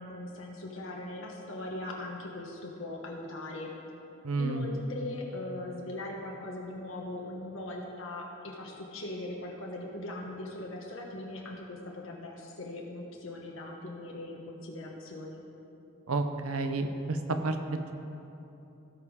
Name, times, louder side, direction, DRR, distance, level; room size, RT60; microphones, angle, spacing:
voice 1, 0.0-3.7 4.4-15.4, left 2 dB, 65° left, -1 dB, 1.2 m, -40 dB
voice 2, 4.2-4.7 16.1-17.9, right 3 dB, 80° right, 6 dB, 0.8 m, -31 dB
17.0 x 5.6 x 4.8 m, 2.9 s
head